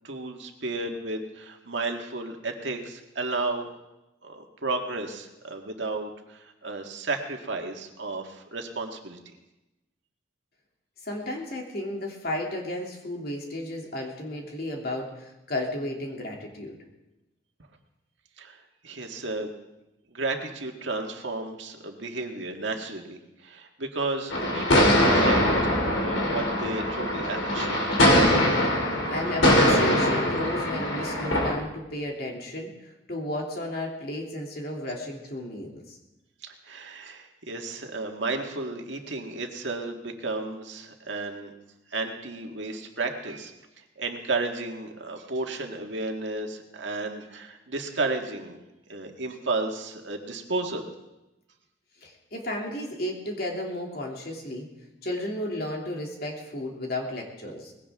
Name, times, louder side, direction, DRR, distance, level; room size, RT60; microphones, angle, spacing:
voice 1, 0.0-3.7 4.2-9.2 18.4-19.5 20.1-25.4 25.9-28.0 36.4-41.5 41.9-43.5 43.8-48.6 48.9-50.9, right 3 dB, 70° right, 3 dB, 1.8 m, -33 dB
voice 2, 11.0-16.8 28.6-28.7 29.1-36.0 52.0-54.7 55.0-57.7, left 1 dB, 50° left, 0 dB, 2.7 m, -33 dB
sound 1, 24.3-31.5, left 1 dB, 85° left, 3.0 m, -22 dB
20.0 x 16.5 x 3.6 m, 0.98 s
head